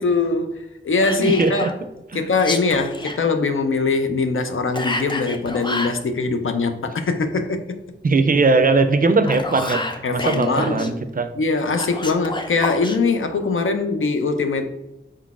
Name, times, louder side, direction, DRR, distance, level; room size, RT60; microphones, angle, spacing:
voice 1, 0.0-1.7 2.1-7.6 10.0-10.9 11.4-14.6, left 3 dB, 85° left, 0.5 m, -22 dB
Whispering, 1.0-1.7 2.3-3.2 4.7-6.0 9.1-10.9 11.7-13.0, left 2 dB, 25° left, 0.4 m, -29 dB
voice 2, 1.2-1.7 2.1-2.3 8.0-11.3, right 3 dB, 45° right, 0.4 m, -19 dB
4.3 x 3.8 x 2.4 m
wide cardioid pair, 65°, 20 cm